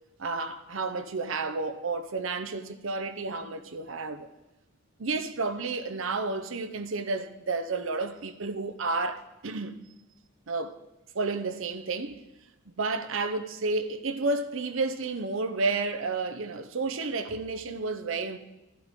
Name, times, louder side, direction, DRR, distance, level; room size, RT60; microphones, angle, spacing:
voice 1, 0.2-4.3 5.0-9.8 10.5-10.8 11.1-12.2 12.8-18.4, right 3 dB, 70° right, 0.8 m, -31 dB
14.0 x 11.5 x 3.7 m
head